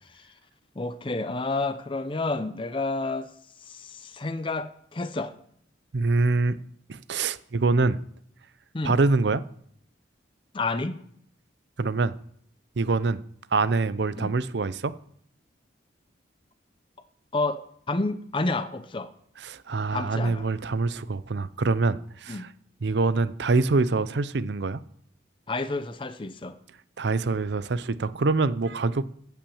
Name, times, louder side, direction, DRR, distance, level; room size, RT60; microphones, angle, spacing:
voice 1, 0.8-3.3 3.6-5.3 8.7-9.0 10.5-11.0 14.1-14.3 17.3-17.6 17.9-19.1 19.9-20.5 22.3-22.5 25.5-26.5, left 3 dB, 25° left, 11 dB, 0.6 m, -30 dB
voice 2, 5.9-6.6 6.9-8.0 8.8-9.4 11.8-12.1 12.8-13.2 13.5-14.9 19.4-22.5 22.8-24.8 27.0-29.0, right 3 dB, 65° right, 16 dB, 0.6 m, -25 dB
15.5 x 5.9 x 7.1 m, 0.66 s
head